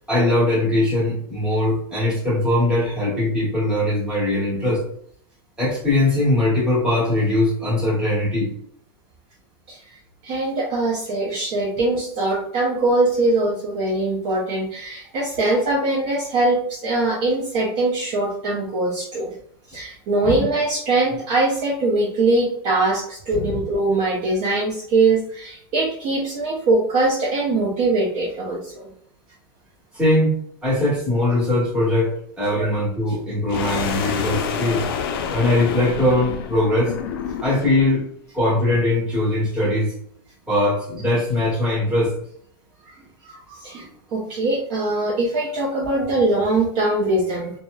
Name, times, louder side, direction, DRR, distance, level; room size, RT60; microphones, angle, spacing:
voice 1, 0.1-4.8 5.6-8.5 20.2-20.4 23.5-23.6 29.9-30.3 30.6-34.8 35.3-36.9 37.4-38.1 38.3-39.9 40.5-42.1, left 1 dB, 5° right, -8 dB, 1.1 m, -21 dB
voice 2, 10.2-19.3 19.7-28.9 32.6-32.7 43.2-47.5, right 2 dB, 35° right, -3 dB, 0.5 m, -22 dB
sound 1, 33.5-37.8, left 6 dB, 60° left, 0.4 m, -28 dB
2.8 x 2.0 x 2.2 m, 0.66 s
supercardioid pair, 160°, 13 cm